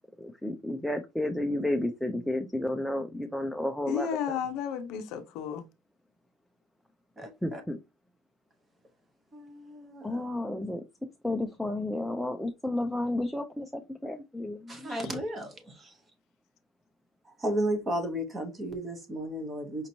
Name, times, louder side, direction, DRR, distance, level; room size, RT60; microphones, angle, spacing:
voice 1, 0.2-4.4 7.4-7.8 10.0-10.8 11.2-15.0, left 1 dB, ahead, 0.3 m, -32 dB
voice 2, 3.9-5.7 14.9-15.1, left 8 dB, 50° left, 0.5 m, -33 dB
voice 3, 7.2-7.6 9.3-10.2 14.7-15.9 17.4-19.9, right 1 dB, 15° right, 0.9 m, -34 dB
5.1 x 2.9 x 2.7 m
cardioid pair, 175°, 0 cm